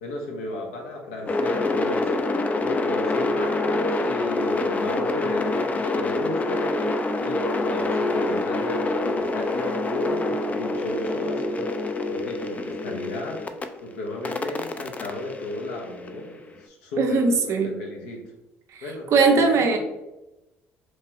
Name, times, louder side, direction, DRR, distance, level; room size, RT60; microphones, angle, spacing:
voice 1, 0.0-2.1 2.6-13.4 13.8-18.2 18.8-19.8, left 1 dB, 80° left, 1 dB, 0.6 m, -35 dB
sound 1, 1.3-13.6 14.2-16.4, left 2 dB, 25° left, 0.3 m, -26 dB
voice 2, 17.0-17.7 18.7-18.8 19.1-19.8, right 4 dB, 55° right, 4 dB, 0.5 m, -20 dB
3.0 x 2.3 x 2.8 m, 0.99 s
hypercardioid pair, 60°, 6 cm